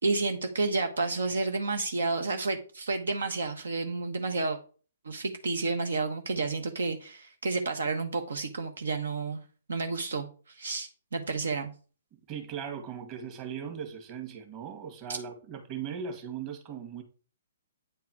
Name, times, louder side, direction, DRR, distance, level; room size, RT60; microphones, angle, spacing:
voice 1, 0.0-4.6 5.0-9.4 9.7-11.7 15.1-15.2, right 3 dB, 75° right, 1.1 m, -30 dB
voice 2, 12.1-17.0, right 7 dB, 30° right, 2.2 m, -39 dB
9.0 x 4.7 x 4.7 m
hypercardioid pair, 130°, 0 cm